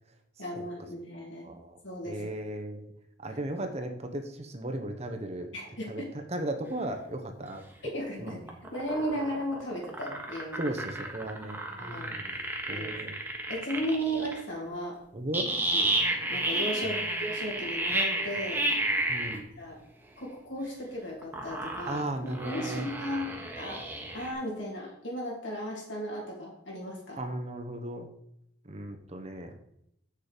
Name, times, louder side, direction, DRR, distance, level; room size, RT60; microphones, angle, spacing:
voice 1, 0.4-1.5 1.8-2.2 3.3-3.4 5.5-6.1 7.8-10.8 11.7-12.1 12.7-12.9 13.5-15.0 15.7-15.9 16.3-18.6 19.6-19.8 20.2-23.9 24.1-27.2, equal, 80° left, -2 dB, 3.2 m, -35 dB
voice 2, 1.4-1.8 2.0-2.9 3.2-5.5 5.9-7.9 8.2-8.4 10.6-13.1 15.1-15.5 16.8-17.0 19.1-19.5 21.9-22.9 27.2-28.1 28.7-29.5, right 1 dB, 35° right, 6 dB, 0.9 m, -36 dB
sound 1, 8.3-14.4 15.3-19.4 21.2-24.3, right 1 dB, 10° right, 1.3 m, -31 dB
7.6 x 6.7 x 5.1 m, 0.76 s
head